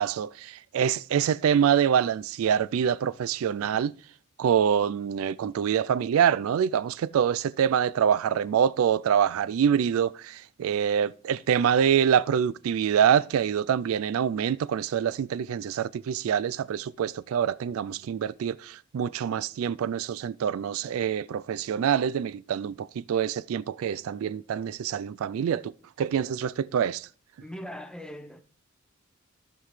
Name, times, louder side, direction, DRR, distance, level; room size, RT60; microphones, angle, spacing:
voice 1, 0.0-3.9 4.4-25.7 26.0-27.1, right 8 dB, 80° right, 0.3 m, -25 dB
voice 2, 27.4-28.4, equal, 5° left, 0.8 m, -40 dB
13.5 x 5.8 x 3.2 m
head